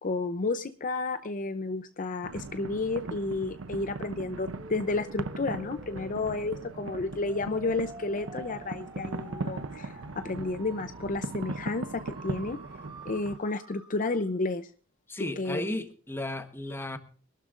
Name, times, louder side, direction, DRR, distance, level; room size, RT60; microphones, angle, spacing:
voice 1, 0.0-12.6 13.0-14.7 15.2-15.6, left 3 dB, 40° left, 0.6 m, -31 dB
sound 1, 2.2-13.4, right 3 dB, 65° right, 0.7 m, -39 dB
sound 2, 4.5-14.4, right 2 dB, 25° right, 2.1 m, -49 dB
voice 2, 15.1-17.0, left 1 dB, 10° left, 1.1 m, -34 dB
24.5 x 12.0 x 2.5 m
head